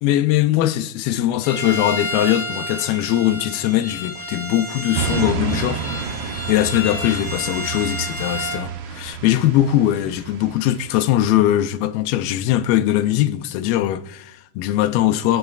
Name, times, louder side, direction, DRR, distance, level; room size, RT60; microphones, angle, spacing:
voice 1, 0.0-15.4, left 13 dB, 80° left, 2.3 m, -21 dB
Bowed string instrument, 1.4-8.7, left 1 dB, 5° right, 4.1 m, -30 dB
sound 1, 4.9-11.1, right 6 dB, 75° right, 2.1 m, -29 dB
23.0 x 7.9 x 2.4 m
omnidirectional pair, 4.6 m